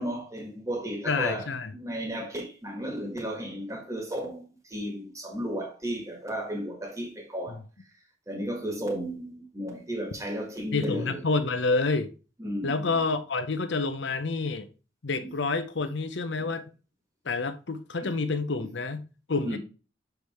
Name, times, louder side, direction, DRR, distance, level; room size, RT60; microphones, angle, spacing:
voice 1, 0.0-7.6 8.3-11.2 12.4-13.0 18.0-18.1 19.4-19.6, equal, 15° right, 1.4 m, -34 dB
voice 2, 1.1-1.7 10.7-12.1 12.6-14.7 15.0-16.7 17.2-19.0 19.3-19.6, left 3 dB, 70° left, 0.7 m, -28 dB
6.5 x 4.7 x 3.4 m
head